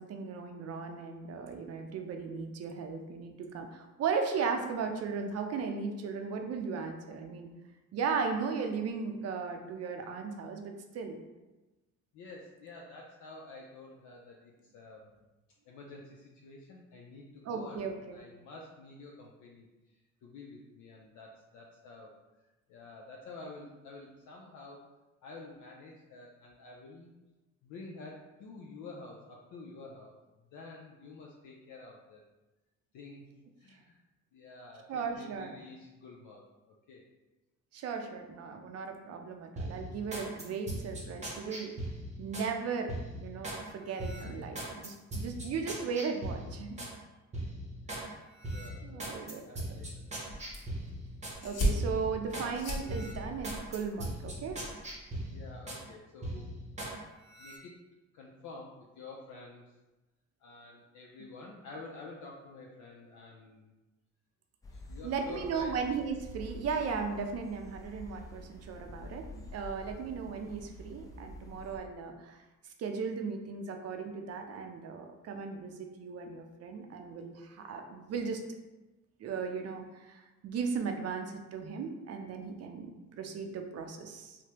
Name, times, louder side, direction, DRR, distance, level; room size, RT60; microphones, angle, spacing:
voice 1, 0.0-7.5 7.9-11.2 17.4-18.2 34.9-35.6 37.7-41.8 42.2-46.8 48.0-48.2 48.8-49.4 51.4-54.6 65.0-72.4 72.8-78.4 79.2-84.4, right 5 dB, 55° right, 5 dB, 0.5 m, -36 dB
voice 2, 12.1-15.2 15.7-24.9 25.2-27.1 27.6-30.2 30.5-32.2 32.9-33.2 33.6-34.0 34.3-37.0 48.5-50.3 55.3-56.5 57.4-57.8 58.1-59.7 60.4-63.8 64.7-65.8 69.8-70.2, left 3 dB, 75° left, -2 dB, 0.5 m, -49 dB
sound 1, 39.6-42.5 42.9-43.6 44.0-47.0 47.3-48.1 48.4-51.4 51.8-52.5 52.9-55.8 56.2-57.0 57.3-57.6, right 1 dB, 25° right, 0.7 m, -40 dB
sound 2, 50.3-55.3, equal, 55° left, 1.0 m, -37 dB
sound 3, 64.6-71.8, left 2 dB, 10° left, 0.4 m, -48 dB
3.2 x 2.1 x 2.9 m, 1.1 s
cardioid pair, 90°, 30 cm